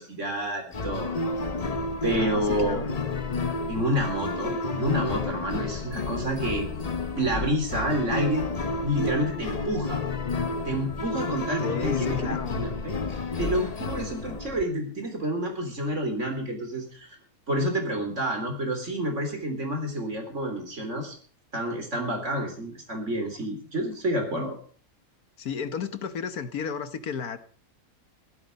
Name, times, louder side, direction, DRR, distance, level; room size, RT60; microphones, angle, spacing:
voice 1, 0.0-1.4 2.0-2.9 3.7-6.7 7.1-8.4 8.8-10.0 10.7-13.0 13.4-17.2 17.5-21.1 21.5-24.6, right 1 dB, 50° right, 4.0 m, -29 dB
sound 1, 0.7-14.6, left 3 dB, 30° left, 0.8 m, -31 dB
voice 2, 2.1-2.9 11.6-12.6 25.4-27.4, left 6 dB, 75° left, 1.6 m, -33 dB
15.0 x 13.0 x 5.3 m
omnidirectional pair, 1.6 m